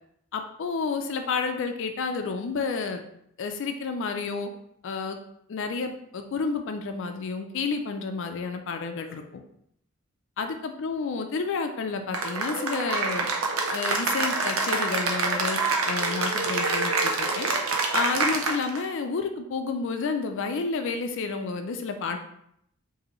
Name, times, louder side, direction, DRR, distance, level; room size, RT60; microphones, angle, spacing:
voice 1, 0.3-3.0 3.4-4.5 4.8-5.2 5.5-9.4 10.4-13.3 13.7-15.6 15.9-17.5 17.9-22.2, left 4 dB, 65° left, 6 dB, 0.4 m, -30 dB
Cheering / Applause, 12.1-18.9, right 3 dB, 80° right, 0.7 m, -26 dB
4.9 x 2.7 x 3.0 m, 0.73 s
head